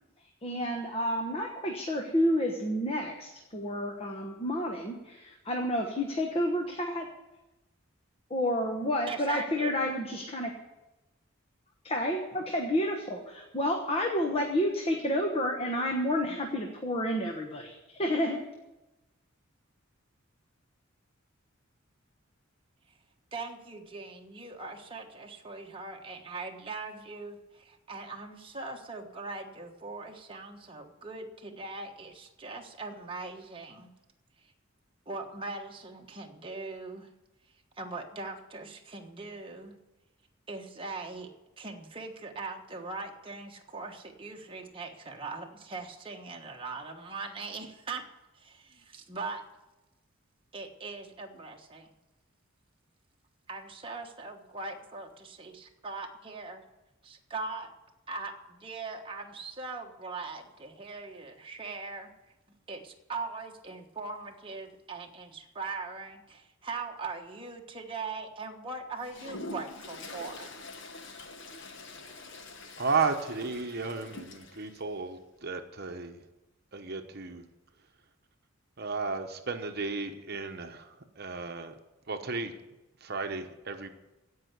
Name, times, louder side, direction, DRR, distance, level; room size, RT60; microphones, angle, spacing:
voice 1, 0.4-7.1 8.3-10.5 11.8-18.4, equal, 30° left, 3 dB, 1.2 m, -30 dB
voice 2, 9.1-9.9 23.3-33.9 35.1-37.1 37.8-39.8 40.5-48.1 48.3-49.4 50.5-51.9 53.5-56.6 57.0-57.7 58.1-62.1 62.7-70.7, right 3 dB, 25° right, 2 dB, 1.3 m, -40 dB
Toilet flush, 69.0-74.8, left 2 dB, 60° left, 1.2 m, -45 dB
voice 3, 72.8-76.2 76.7-77.5 78.8-81.7 82.1-82.5 83.0-83.9, right 4 dB, 50° right, 6 dB, 1.0 m, -33 dB
16.5 x 5.7 x 9.4 m, 1.0 s
head